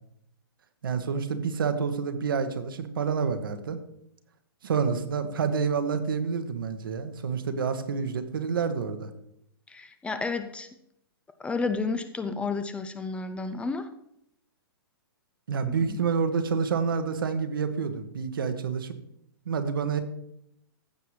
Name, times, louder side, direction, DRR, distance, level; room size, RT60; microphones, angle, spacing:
voice 1, 0.8-3.8 4.6-9.1 15.5-19.0 19.5-20.0, right 6 dB, 65° right, 9 dB, 1.1 m, -28 dB
voice 2, 9.7-10.7 11.4-13.9 15.9-16.0, left 4 dB, 10° left, 10 dB, 0.4 m, -31 dB
15.0 x 6.9 x 3.2 m, 0.76 s
figure-of-eight pair, 120°, 12 cm